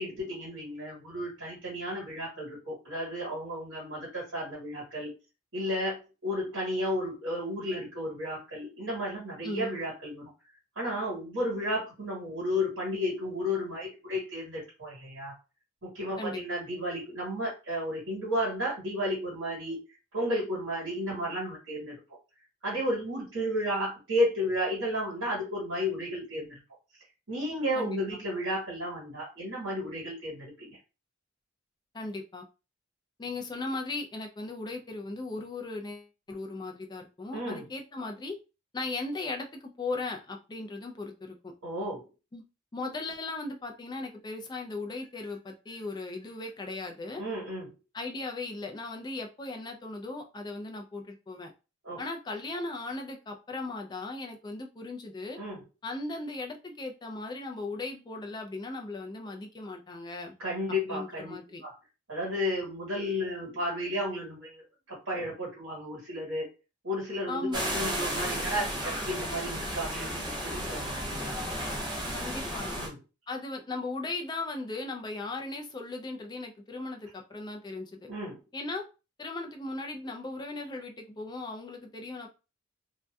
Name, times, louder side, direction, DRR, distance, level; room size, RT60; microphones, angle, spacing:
voice 1, 0.0-5.1 5.5-10.3 10.7-15.3 15.8-19.8 20.1-21.9 22.6-26.6 27.3-30.8 37.3-37.7 41.6-42.0 47.2-47.7 51.8-52.0 55.4-55.6 60.4-61.3 61.6-61.7 62.1-66.5 66.8-71.3 72.8-73.0 78.1-78.4, equal, 80° right, -6 dB, 1.3 m, -33 dB
voice 2, 31.9-32.5 33.2-38.4 38.7-41.5 42.3-42.4 42.7-47.2 47.9-51.5 52.0-55.4 55.8-60.3 60.9-61.6 67.3-67.8 72.1-72.7 73.3-78.0 78.5-78.8 79.2-82.3, left 2 dB, 20° left, 3 dB, 0.3 m, -37 dB
sound 1, 67.5-72.9, equal, 20° right, 0.6 m, -33 dB
2.6 x 2.2 x 2.2 m, 0.31 s
head